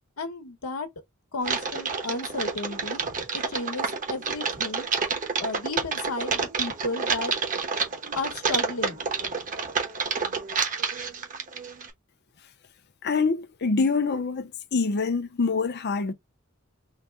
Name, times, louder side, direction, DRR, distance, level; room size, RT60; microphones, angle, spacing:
voice 1, 0.2-0.9 1.3-4.9 5.4-7.3 8.2-9.0, left 2 dB, 80° left, 1.0 m, -33 dB
Typing, 1.4-11.9, right 5 dB, 40° right, 0.9 m, -29 dB
voice 2, 13.0-16.1, left 4 dB, 50° left, 0.6 m, -25 dB
4.0 x 2.2 x 3.3 m
head